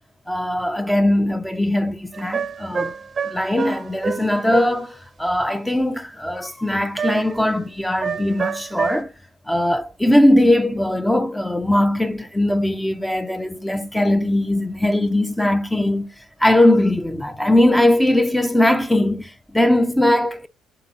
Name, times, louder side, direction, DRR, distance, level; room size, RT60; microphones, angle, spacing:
voice 1, 0.3-3.0 3.2-9.1 9.5-20.5, left 1 dB, 5° left, 0.6 m, -20 dB
sound 1, 2.1-4.8 7.0-7.5 8.0-9.0, right 6 dB, 40° right, 0.6 m, -28 dB
7.6 x 4.4 x 2.9 m
supercardioid pair, 75°, 0 cm